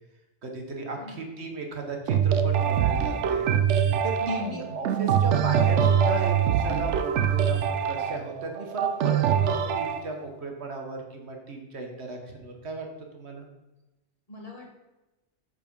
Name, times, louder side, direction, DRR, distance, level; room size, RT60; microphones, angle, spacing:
voice 1, 0.4-3.5 4.0-12.9 13.1-13.5, right 3 dB, 70° right, 2 dB, 1.3 m, -36 dB
sound 1, 2.1-10.0, right 8 dB, 85° right, 0.9 m, -24 dB
voice 2, 4.2-4.8 14.3-14.7, left 2 dB, 35° left, -1 dB, 1.4 m, -38 dB
7.5 x 4.0 x 5.3 m, 1.0 s
omnidirectional pair, 1.2 m